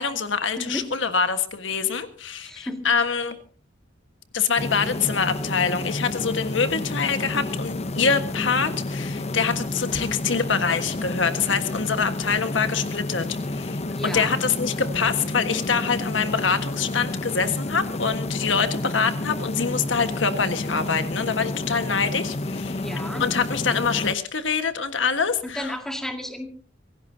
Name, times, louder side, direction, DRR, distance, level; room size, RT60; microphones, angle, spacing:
voice 1, 0.0-3.4 4.3-22.8 23.2-25.7, left 5 dB, 70° left, 9 dB, 1.5 m, -25 dB
voice 2, 2.4-2.9 13.9-14.3 22.8-23.3 25.5-26.5, left 1 dB, 5° left, 4 dB, 2.1 m, -32 dB
sound 1, 4.6-24.1, left 2 dB, 35° left, 0.7 m, -30 dB
25.0 x 17.5 x 2.8 m, 0.40 s
head